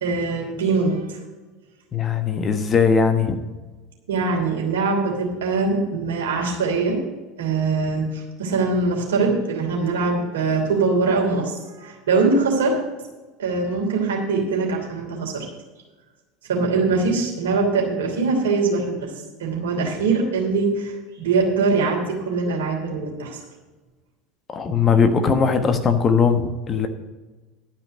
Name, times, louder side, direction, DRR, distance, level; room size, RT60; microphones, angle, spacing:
voice 1, 0.0-1.2 4.1-7.0 7.4-12.8 13.4-15.5 16.5-19.1 19.4-23.4, right 4 dB, 70° right, -1 dB, 3.0 m, -22 dB
voice 2, 1.9-3.4 24.5-26.9, left 5 dB, 30° left, 7 dB, 1.2 m, -19 dB
12.0 x 5.4 x 8.0 m, 1.2 s
figure-of-eight pair, 75°, 0 cm